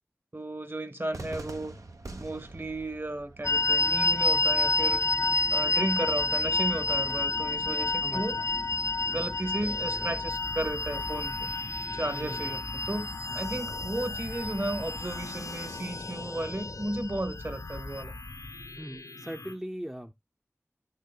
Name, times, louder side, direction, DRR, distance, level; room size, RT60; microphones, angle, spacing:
voice 1, 0.3-1.8 2.2-5.1 5.5-8.4 9.1-11.5 11.9-18.1, right 1 dB, 45° right, 1.4 m, -34 dB
Cheering / Fireworks, 1.1-7.1, right 2 dB, 85° right, 1.2 m, -47 dB
sound 1, 3.4-18.0, left 3 dB, 65° left, 0.4 m, -29 dB
voice 2, 8.0-8.5 9.1-9.4 12.1-12.6 13.3-13.7 18.8-20.1, equal, 10° right, 0.6 m, -41 dB
sound 2, 9.6-19.5, left 2 dB, 90° left, 1.1 m, -43 dB
10.5 x 6.6 x 2.3 m
wide cardioid pair, 45°, 6 cm